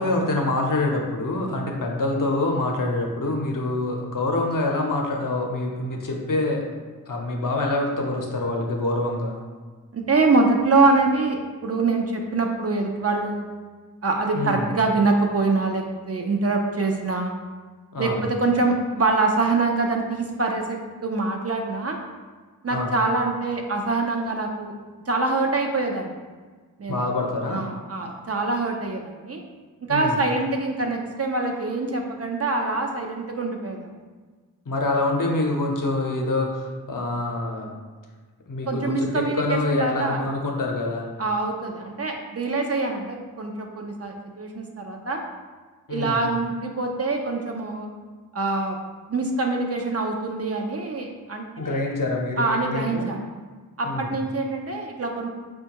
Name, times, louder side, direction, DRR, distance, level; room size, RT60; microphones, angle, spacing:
voice 1, 0.0-6.7 7.1-9.4 14.3-14.7 17.9-18.2 22.7-22.9 26.9-27.6 29.9-30.2 34.7-37.7 38.5-41.1 45.9-46.2 51.6-53.1 53.8-54.1, left 2 dB, 55° left, 0 dB, 0.6 m, -26 dB
voice 2, 9.9-13.5 14.0-17.3 18.0-22.0 22.6-24.7 25.1-26.2 26.8-27.0 27.5-29.4 29.9-33.9 38.7-40.2 41.2-45.2 45.9-47.9 48.3-48.8 49.1-51.8 52.4-53.3 53.8-55.3, right 3 dB, 40° right, 2 dB, 0.5 m, -24 dB
4.3 x 2.2 x 2.9 m, 1.4 s
cardioid pair, 45°, 37 cm